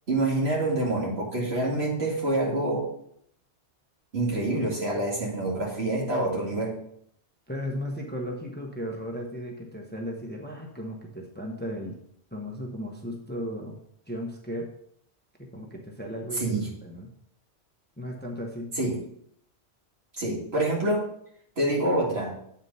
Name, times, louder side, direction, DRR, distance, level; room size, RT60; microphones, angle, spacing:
voice 1, 0.1-2.9 4.1-6.7 16.4-16.7 18.8-18.9 20.2-21.0 21.6-22.3, right 2 dB, 65° right, -3 dB, 2.4 m, -26 dB
voice 2, 7.5-12.0 12.3-13.8 14.1-14.7 15.4-16.5 16.8-17.1 18.0-18.7, equal, 10° left, 1 dB, 1.0 m, -35 dB
8.1 x 4.4 x 5.4 m, 0.69 s
omnidirectional pair, 1.1 m